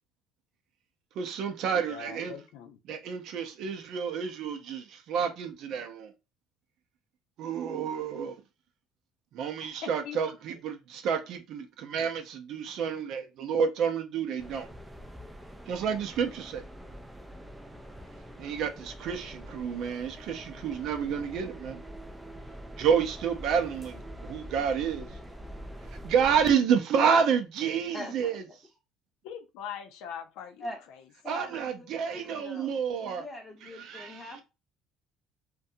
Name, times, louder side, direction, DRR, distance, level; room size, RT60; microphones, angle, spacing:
voice 1, 1.2-2.3 2.9-6.1 7.4-8.4 9.3-14.7 15.7-16.6 18.4-21.8 22.8-25.1 26.0-28.4 31.3-33.2 33.8-34.3, right 7 dB, 65° right, 0.5 m, -29 dB
voice 2, 1.9-2.8 9.8-10.2 29.2-31.1, left 8 dB, 75° left, 0.5 m, -42 dB
sound 1, 14.4-26.5, equal, 5° right, 0.4 m, -45 dB
voice 3, 27.9-28.4 30.6-30.8 31.2-32.7 33.1-34.4, left 1 dB, 15° left, 0.8 m, -42 dB
2.5 x 2.2 x 2.6 m
cardioid pair, 115°, 0 cm